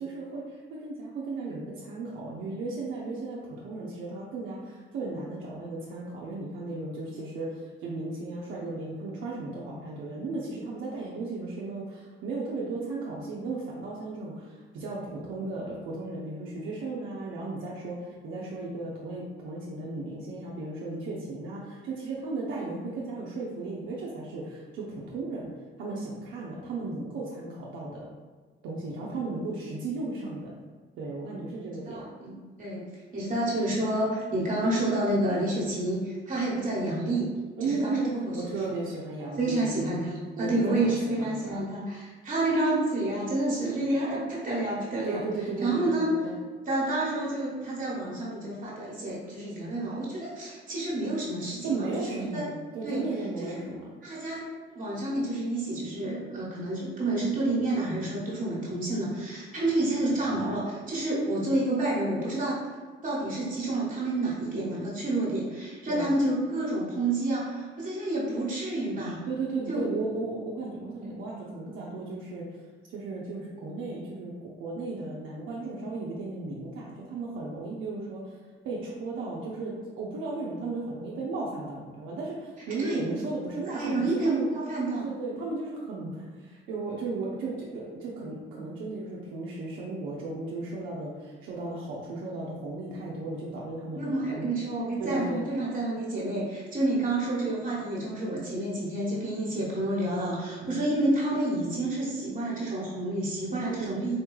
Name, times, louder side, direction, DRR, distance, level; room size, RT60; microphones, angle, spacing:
voice 1, 0.0-25.5 25.8-28.0 28.6-30.5 31.0-32.0 37.6-39.8 40.4-40.9 41.2-41.7 45.0-45.8 46.2-46.4 51.6-53.9 65.9-66.1 69.3-72.4 72.9-78.3 78.6-84.5 85.0-94.5 95.0-95.4 95.9-96.0 100.5-100.8 103.7-104.0, right 3 dB, 90° right, -5 dB, 0.6 m, -35 dB
voice 2, 31.9-32.8 33.1-37.3 37.6-38.4 39.3-45.2 45.6-46.1 46.6-52.5 52.8-53.1 53.4-53.6 54.0-54.5 54.7-62.6 63.0-69.2 69.7-69.9 82.8-83.0 83.7-85.0 93.9-104.2, right 2 dB, 40° right, -7 dB, 1.2 m, -29 dB
4.1 x 2.2 x 3.1 m, 1.4 s
cardioid pair, 90°, 20 cm